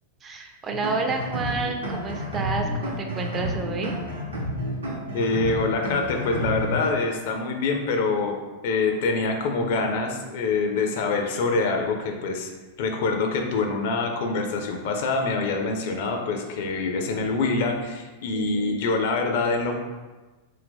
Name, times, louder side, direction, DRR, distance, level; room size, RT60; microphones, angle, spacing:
voice 1, 0.2-3.9 18.4-18.7, right 3 dB, 25° right, 4 dB, 0.3 m, -30 dB
sound 1, 0.7-6.9, equal, 75° right, 0.6 m, -30 dB
voice 2, 5.1-8.4 8.6-12.5 12.8-19.8, left 3 dB, 50° left, 3 dB, 0.4 m, -25 dB
2.6 x 2.1 x 3.7 m, 1.2 s
figure-of-eight pair, 90°, 0 cm